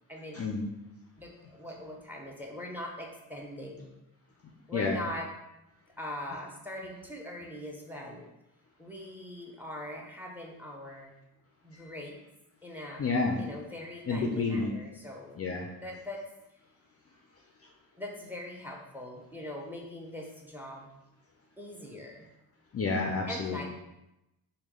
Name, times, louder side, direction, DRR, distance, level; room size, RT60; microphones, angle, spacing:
voice 1, 0.3-0.7 4.7-5.0 11.7-11.9 13.0-13.4 14.1-14.7 15.4-15.6 22.7-23.6, left 3 dB, 35° left, 0 dB, 0.5 m, -30 dB
voice 2, 1.2-3.9 4.7-5.3 6.0-8.2 8.8-11.1 11.6-12.1 12.6-13.0 13.4-15.3 15.8-16.2 18.0-20.9 21.6-22.3 23.3-23.6, left 1 dB, 5° right, -1 dB, 0.7 m, -41 dB
3.1 x 2.3 x 3.6 m, 0.91 s
cardioid pair, 65°, 40 cm